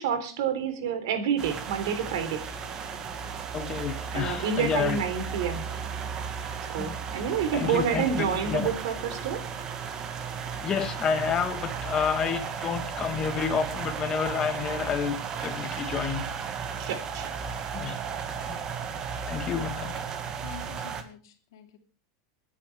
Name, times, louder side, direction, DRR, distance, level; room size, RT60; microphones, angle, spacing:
voice 1, 0.0-2.4 4.1-5.6 6.7-9.4 16.8-17.4, right 7 dB, 80° right, 9 dB, 3.5 m, -28 dB
sound 1, 1.4-21.0, right 6 dB, 30° right, 1.7 m, -35 dB
voice 2, 3.5-5.0 6.8-6.9 7.5-8.7 10.6-16.2 17.7-18.0 18.5-18.7 19.3-20.0, left 7 dB, 25° left, 8 dB, 1.9 m, -29 dB
voice 3, 20.4-21.8, left 6 dB, 90° left, 4 dB, 2.8 m, -47 dB
27.5 x 10.0 x 3.4 m, 0.36 s
supercardioid pair, 150°, 2 cm